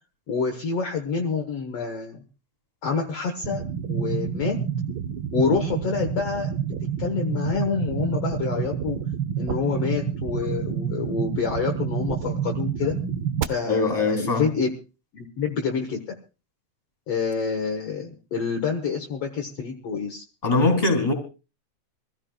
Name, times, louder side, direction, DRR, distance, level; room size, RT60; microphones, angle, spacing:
voice 1, 0.3-2.2 2.8-3.6 3.9-4.6 5.3-6.5 7.0-9.0 9.4-13.0 13.5-14.7 15.1-16.0 17.1-20.2, left 5 dB, 60° left, 3 dB, 2.2 m, -27 dB
sound 1, 3.4-13.4, right 8 dB, 85° right, 1.1 m, -28 dB
voice 2, 13.7-14.5 20.4-21.1, left 3 dB, 15° left, 5 dB, 3.4 m, -21 dB
25.5 x 15.5 x 2.4 m, 0.32 s
omnidirectional pair, 3.5 m